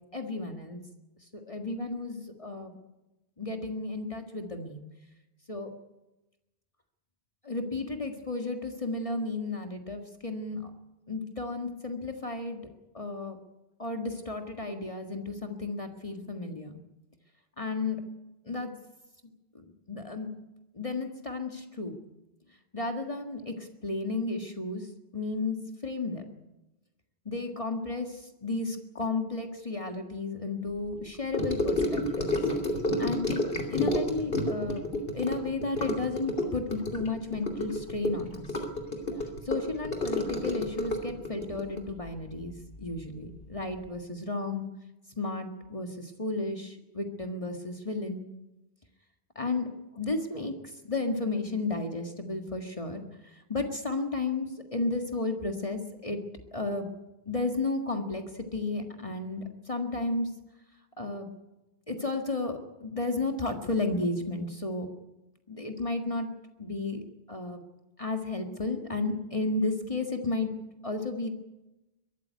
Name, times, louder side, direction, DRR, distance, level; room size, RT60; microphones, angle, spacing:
voice 1, 0.1-0.8 1.3-2.7 3.4-4.9 5.5-5.7 7.4-10.7 11.1-12.6 12.9-13.4 13.8-16.8 17.6-18.0 18.5-18.7 19.6-20.3 20.7-22.0 22.7-24.9 25.1-26.2 27.3-32.3 33.0-33.4 33.7-34.8 35.1-38.5 39.5-44.7 45.2-48.2 49.4-49.7 49.9-50.5 50.8-53.0 53.5-56.2 56.5-56.9 57.3-60.3 61.0-61.3 61.9-64.9 65.5-66.3 66.6-67.0 67.3-67.6 68.0-70.5 70.8-71.3, left 3 dB, 30° left, 4 dB, 1.8 m, -33 dB
Gurgling / Sink (filling or washing) / Trickle dribble, 31.3-43.0 43.2-43.6 43.8-43.9, left 1 dB, 60° left, 3.1 m, -30 dB
23.0 x 13.0 x 9.5 m, 1.0 s
omnidirectional pair, 1.1 m